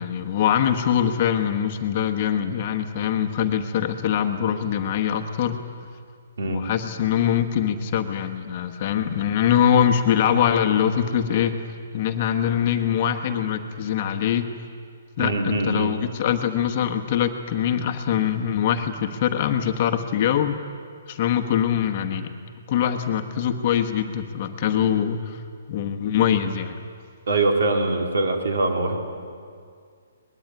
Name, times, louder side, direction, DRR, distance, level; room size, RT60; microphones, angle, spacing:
voice 1, 0.0-5.6 6.4-11.6 11.9-14.5 15.2-20.6 21.1-22.3 22.7-25.4 25.7-26.8, left 9 dB, 25° left, 6 dB, 1.2 m, -23 dB
voice 2, 6.4-6.7 15.2-15.9 27.3-29.0, right 2 dB, 65° right, 3 dB, 3.9 m, -23 dB
24.0 x 20.5 x 9.6 m, 2.2 s
hypercardioid pair, 180°, 0 cm